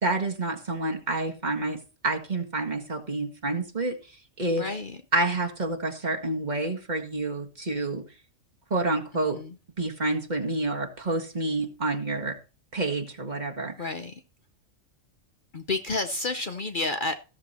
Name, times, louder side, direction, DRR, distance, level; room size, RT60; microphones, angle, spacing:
voice 1, 0.0-4.0 4.4-4.7 5.1-8.0 8.7-9.4 9.8-12.4 12.7-13.9, right 2 dB, 35° right, 1.9 m, -28 dB
voice 2, 4.6-5.0 9.3-9.5 13.8-14.2 15.5-17.2, left 3 dB, 45° left, 1.0 m, -30 dB
15.0 x 7.2 x 4.3 m
omnidirectional pair, 1.3 m